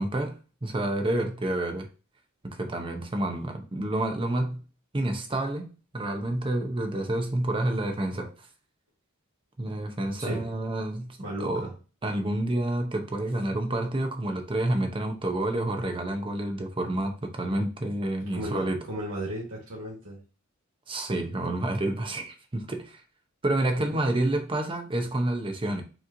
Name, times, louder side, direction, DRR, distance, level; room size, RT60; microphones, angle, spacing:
voice 1, 0.0-1.9 2.4-4.6 4.9-5.6 5.9-8.5 9.6-11.7 12.0-18.8 20.9-23.0 23.4-25.8, right 1 dB, 25° right, 0.6 m, -29 dB
voice 2, 11.2-11.7 18.2-20.2, equal, 70° right, 1.4 m, -35 dB
5.0 x 3.0 x 2.6 m
head